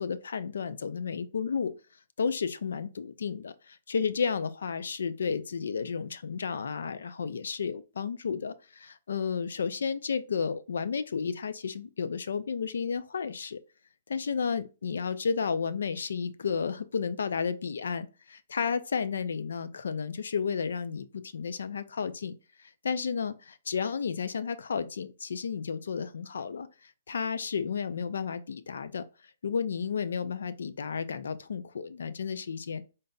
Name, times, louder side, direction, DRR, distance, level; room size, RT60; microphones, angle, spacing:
voice 1, 0.0-1.8 2.2-13.6 14.1-29.1 29.4-32.8, left 6 dB, 80° left, 0.4 m, -32 dB
3.9 x 3.9 x 2.2 m
hypercardioid pair, 180°, 0 cm